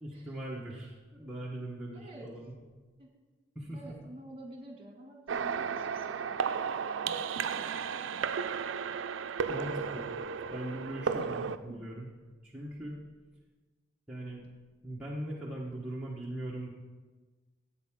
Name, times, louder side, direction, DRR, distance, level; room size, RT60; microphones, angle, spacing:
voice 1, 0.0-2.5 3.5-3.9 9.5-10.1 10.5-12.1 12.4-13.0 14.1-14.5 14.8-16.7, right 1 dB, 5° right, -6 dB, 1.1 m, -40 dB
voice 2, 1.9-2.3 3.0-3.1 3.7-8.5 9.6-10.2 11.2-11.3 11.7-11.9, right 1 dB, 30° right, 0 dB, 2.0 m, -50 dB
sound 1, 5.3-11.6, right 6 dB, 80° right, 0.4 m, -34 dB
14.5 x 8.1 x 3.6 m, 1.3 s
head